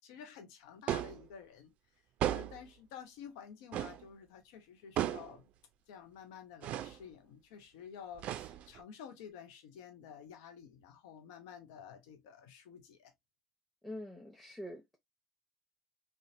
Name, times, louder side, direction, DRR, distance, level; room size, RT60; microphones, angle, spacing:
voice 1, 0.0-1.7 2.3-5.5 5.9-13.1, left 8 dB, 80° left, 0.5 m, -51 dB
sound 1, 0.9-1.3 2.2-2.7 3.7-4.0 5.0-5.4 6.6-7.0 8.2-8.8, right 12 dB, 60° right, 0.3 m, -35 dB
voice 2, 13.8-15.0, left 1 dB, 5° left, 0.7 m, -45 dB
2.8 x 2.0 x 2.5 m
hypercardioid pair, 75°, 3 cm